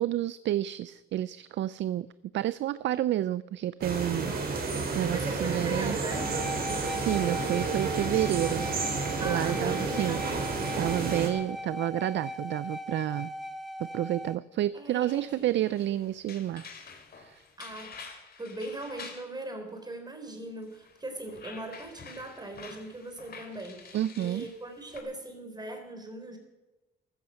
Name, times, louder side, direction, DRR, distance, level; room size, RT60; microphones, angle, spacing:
voice 1, 0.0-2.1 2.3-6.0 6.8-8.7 9.2-10.2 10.8-13.3 13.8-16.8 17.2-17.4 23.9-24.5, right 13 dB, 65° right, 17 dB, 0.5 m, -30 dB
sound 1, 3.8-11.3, right 4 dB, 50° right, 4.1 m, -31 dB
voice 2, 4.2-6.2 9.2-10.8 14.7-15.4 17.6-18.0 18.4-26.4, right 2 dB, 20° right, 5 dB, 4.2 m, -40 dB
sound 2, 6.1-14.4, left 1 dB, ahead, 1.1 m, -38 dB
sound 3, 15.1-19.3 20.7-25.0, left 5 dB, 50° left, 2.8 m, -48 dB
15.0 x 13.5 x 6.5 m, 1.0 s
cardioid pair, 90°, 20 cm